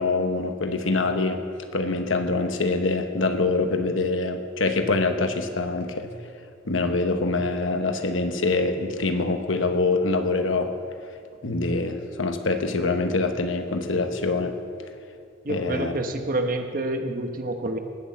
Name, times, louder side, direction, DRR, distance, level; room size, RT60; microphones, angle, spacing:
voice 1, 0.0-1.4 1.7-6.1 6.6-10.7 11.4-14.5 15.5-15.9, left 3 dB, 80° left, 7 dB, 1.1 m, -24 dB
voice 2, 15.4-17.8, right 1 dB, 45° right, 6 dB, 1.0 m, -28 dB
19.0 x 6.3 x 7.2 m, 2.3 s
head